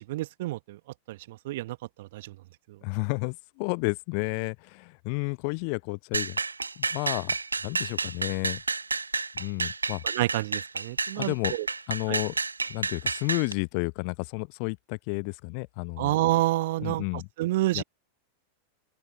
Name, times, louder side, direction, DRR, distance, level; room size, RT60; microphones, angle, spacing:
voice 1, 0.1-0.8 1.1-2.3 10.1-11.7 12.1-12.2 16.0-17.0 17.4-17.8, right 17 dB, 55° right, 1.5 m, -28 dB
voice 2, 2.8-6.4 6.8-7.4 7.6-8.6 9.3-10.0 11.2-11.5 11.9-12.4 12.7-16.1 16.8-17.3 17.7-17.8, left 40 dB or more, 45° left, 0.9 m, -31 dB
sound 1, 6.1-13.5, right 4 dB, 80° right, 1.6 m, -30 dB
open air
figure-of-eight pair, 90°, 0 cm